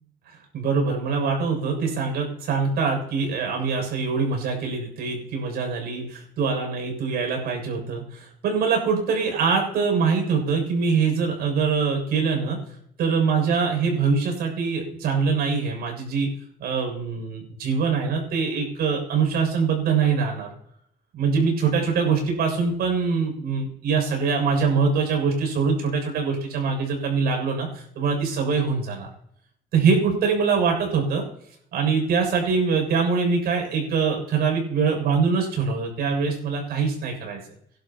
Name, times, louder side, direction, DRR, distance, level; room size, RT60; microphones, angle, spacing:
voice 1, 0.5-12.6 13.0-16.3 16.6-20.5 21.1-29.1 29.7-31.2 31.7-37.4, right 5 dB, 70° right, 2 dB, 7.0 m, -23 dB
25.5 x 12.0 x 3.0 m, 0.73 s
cardioid pair, 110°, 17 cm